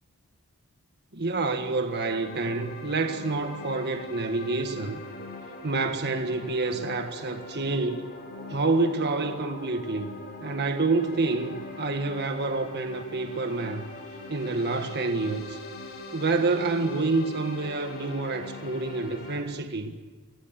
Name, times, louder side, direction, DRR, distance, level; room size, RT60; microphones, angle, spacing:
voice 1, 1.1-5.0 5.6-8.1 8.5-10.1 10.4-13.9 14.3-15.6 16.1-20.0, right 3 dB, 50° right, 1.6 m, -28 dB
sound 1, 2.0-19.4, left 2 dB, 50° left, 7.8 m, -41 dB
29.0 x 19.0 x 7.6 m
head